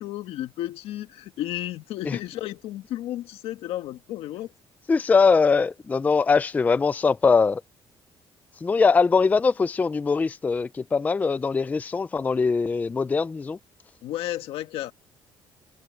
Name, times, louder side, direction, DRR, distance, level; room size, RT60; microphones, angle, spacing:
voice 1, 0.0-4.5 14.0-14.9, left 13 dB, 80° left, 1.6 m, -33 dB
voice 2, 4.9-7.6 8.6-13.6, left 4 dB, 15° left, 0.4 m, -22 dB
cardioid pair, 150°, 10 cm